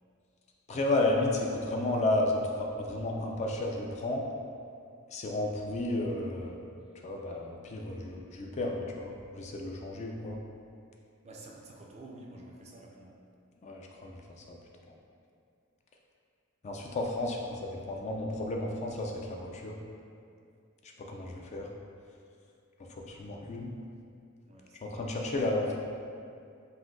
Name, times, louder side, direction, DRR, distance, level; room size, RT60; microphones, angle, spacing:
voice 1, 0.7-4.2 5.1-6.6 7.0-10.4 13.6-14.2 14.5-14.6 16.6-17.4 17.9-19.8 21.1-21.7 22.9-23.7 24.8-25.8, left 2 dB, 35° left, 0 dB, 0.3 m, -32 dB
voice 2, 11.2-13.2 17.2-17.5 24.5-25.0, right 2 dB, 30° right, -1 dB, 0.4 m, -50 dB
5.5 x 2.6 x 2.6 m, 2.4 s
head